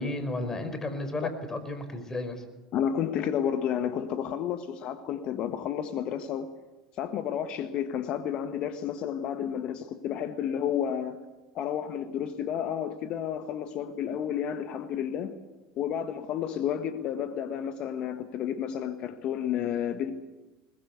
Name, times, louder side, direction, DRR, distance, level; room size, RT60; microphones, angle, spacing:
voice 1, 0.0-2.4, left 2 dB, 25° left, 10 dB, 5.0 m, -33 dB
voice 2, 2.7-6.5 7.0-11.2 11.5-15.3 15.8-20.1, left 9 dB, 55° left, 9 dB, 1.5 m, -31 dB
21.0 x 21.0 x 8.2 m, 1.1 s
hypercardioid pair, 80°, 2 cm